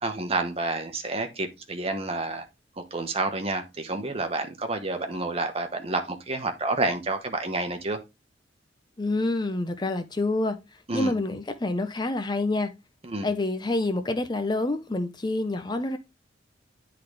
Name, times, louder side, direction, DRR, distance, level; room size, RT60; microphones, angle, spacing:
voice 1, 0.0-2.5 2.8-8.0 10.9-11.1 13.0-13.3, right 2 dB, 30° right, 1.1 m, -29 dB
voice 2, 9.0-12.7 13.2-16.0, left 2 dB, 25° left, 0.5 m, -27 dB
10.0 x 3.9 x 3.3 m
head